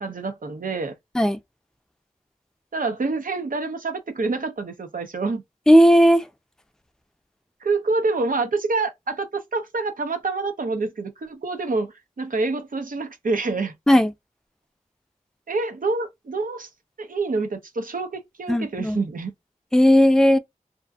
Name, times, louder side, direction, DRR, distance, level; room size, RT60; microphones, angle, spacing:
voice 1, 0.0-1.0 2.7-5.4 7.6-13.7 15.5-16.7 17.0-19.3, right 3 dB, 80° right, 0.7 m, -27 dB
voice 2, 5.7-6.3 13.9-14.1 18.5-19.0 19.7-20.4, equal, 5° left, 0.4 m, -15 dB
2.7 x 2.5 x 2.3 m
wide cardioid pair, 60°, 14 cm